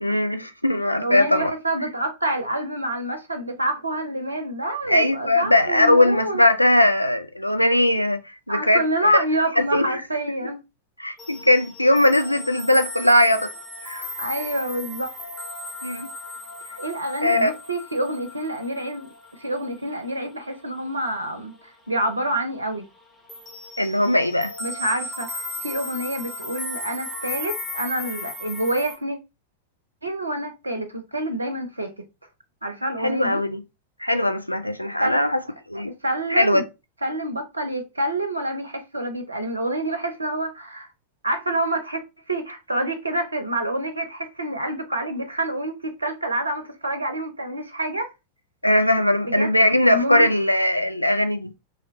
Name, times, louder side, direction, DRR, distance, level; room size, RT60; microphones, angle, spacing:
voice 1, 0.0-1.5 4.9-9.2 9.6-10.0 10.4-10.5 11.0-13.5 13.8-14.1 15.8-16.1 17.2-17.5 23.8-24.5 33.0-33.6 34.0-35.4 35.7-35.9 36.3-36.6 48.6-51.5, left 1 dB, 90° left, 0.4 m, -20 dB
voice 2, 1.0-6.4 8.5-10.6 14.2-15.1 16.8-19.1 19.4-22.8 24.6-29.2 30.0-31.9 32.6-33.4 35.0-35.3 35.7-36.6 37.0-40.9 41.2-42.0 42.3-48.1 49.2-50.3, right 1 dB, 80° right, 0.5 m, -27 dB
sound 1, 11.2-21.6 21.8-22.2 22.5-29.0, left 1 dB, 10° left, 1.1 m, -36 dB
2.9 x 2.8 x 2.8 m
figure-of-eight pair, 90°, 0 cm